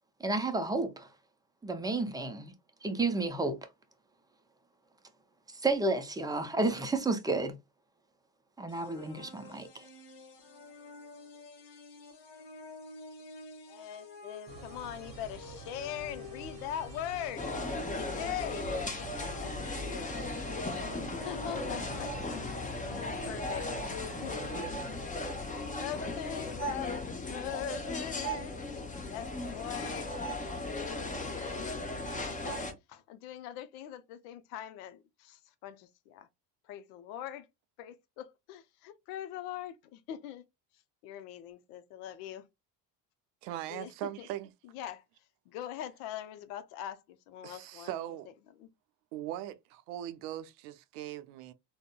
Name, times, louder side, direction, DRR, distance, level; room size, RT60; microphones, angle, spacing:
voice 1, 0.2-1.1 1.6-2.5 2.8-3.6 5.5-7.6 8.6-9.9, right 3 dB, 10° right, 0.4 m, -31 dB
sound 1, 8.7-22.4, left 2 dB, 60° left, 1.0 m, -50 dB
voice 2, 13.7-17.5 17.9-18.7 19.0-20.8 21.1-22.2 22.8-23.9 24.2-24.8 25.8-30.1 30.6-30.8 31.1-31.7 32.2-32.6 32.9-36.3 36.7-37.5 37.8-40.4 41.0-42.4 43.7-43.9 44.2-44.3 44.7-45.0 45.5-48.0 48.6-48.7, left 11 dB, 80° left, 0.6 m, -42 dB
sound 2, 14.5-25.1, right 4 dB, 45° right, 0.8 m, -48 dB
sound 3, 17.4-32.7, left 2 dB, 15° left, 0.7 m, -37 dB
voice 3, 43.4-44.5 47.4-48.3 49.1-51.5, right 13 dB, 80° right, 0.6 m, -40 dB
3.6 x 2.1 x 2.2 m
supercardioid pair, 85°, 47 cm